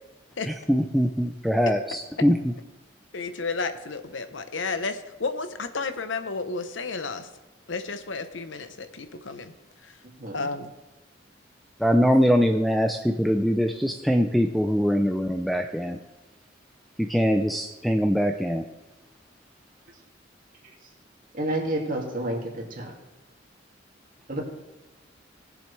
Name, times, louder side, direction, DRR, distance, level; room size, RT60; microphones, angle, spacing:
voice 1, 0.5-2.3 11.8-16.0 17.0-18.6, equal, ahead, 5 dB, 0.4 m, -22 dB
voice 2, 3.1-7.3 7.7-9.5 9.8-10.0 10.3-10.7, left 4 dB, 80° left, 10 dB, 0.9 m, -32 dB
voice 3, 21.3-22.9 24.3-24.4, right 1 dB, 45° right, -1 dB, 2.4 m, -29 dB
19.5 x 7.4 x 3.3 m, 1.1 s
head